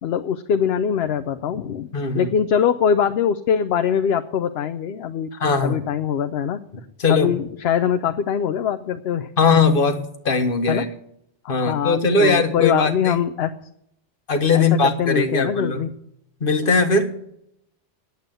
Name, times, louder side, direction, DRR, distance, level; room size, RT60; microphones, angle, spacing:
voice 1, 0.0-1.9 2.1-5.3 5.6-6.6 7.1-9.3 10.7-10.8 11.4-13.5 14.5-15.9, left 8 dB, 65° left, 9 dB, 0.8 m, -22 dB
voice 2, 1.9-2.3 5.4-5.9 7.0-7.3 9.4-10.9 11.5-13.2 14.3-15.8 16.4-17.1, left 4 dB, 50° left, 6 dB, 1.5 m, -19 dB
9.7 x 8.3 x 9.1 m, 0.76 s
omnidirectional pair, 1.2 m